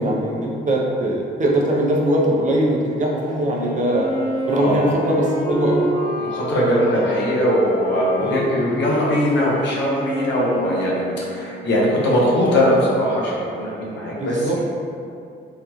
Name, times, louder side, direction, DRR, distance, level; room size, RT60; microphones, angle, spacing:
voice 1, 0.0-4.1 4.5-5.9 6.5-6.6 8.2-8.5 14.1-14.6, right 1 dB, 40° right, -2 dB, 0.5 m, -21 dB
Wind instrument woodwind instrument, 3.4-11.9, equal, 40° left, 1.0 m, -27 dB
voice 2, 6.2-14.6, equal, 65° left, -5 dB, 0.9 m, -20 dB
3.6 x 2.2 x 2.9 m, 2.4 s
cardioid pair, 90°, 20 cm